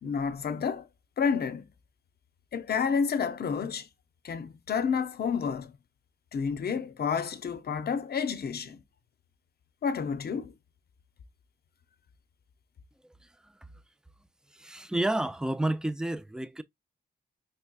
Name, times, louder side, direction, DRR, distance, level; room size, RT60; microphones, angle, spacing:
voice 1, 0.0-0.9 1.2-1.7 2.5-3.9 4.2-5.8 6.3-8.8 9.8-10.5, left 6 dB, 55° left, 0.6 m, -30 dB
voice 2, 14.5-16.6, right 1 dB, 5° right, 0.4 m, -30 dB
4.6 x 3.3 x 2.3 m
cardioid pair, 65°, 20 cm